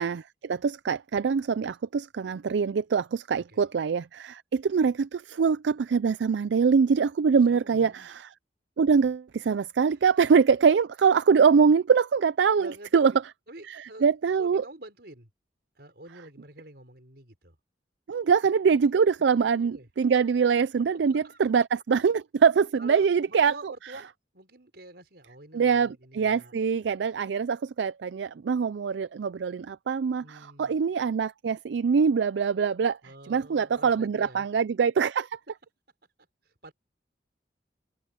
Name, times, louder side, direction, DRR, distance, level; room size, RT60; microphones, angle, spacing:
voice 1, 0.0-8.3 8.8-13.1 13.7-14.6 18.1-23.7 25.5-33.0 33.3-35.4, right 6 dB, 80° right, 0.4 m, -24 dB
voice 2, 7.4-8.1 12.6-13.2 13.5-14.0 14.4-15.3 15.7-17.6 19.2-19.9 21.1-21.4 22.8-26.5 26.8-26.9 30.2-30.7 33.0-34.5 36.6-36.7, right 1 dB, 65° right, 5.2 m, -47 dB
head